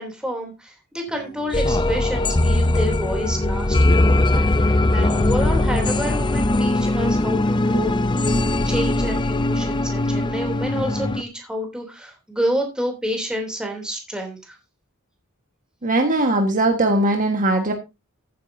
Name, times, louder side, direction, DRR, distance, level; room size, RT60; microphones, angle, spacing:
voice 1, 0.0-7.9 8.6-14.6, equal, 5° right, 2 dB, 3.0 m, -29 dB
sound 1, 1.5-11.2, left 2 dB, 20° left, 0.5 m, -20 dB
voice 2, 15.8-17.7, right 2 dB, 35° right, 4 dB, 1.5 m, -19 dB
14.5 x 9.4 x 2.7 m, 0.25 s
head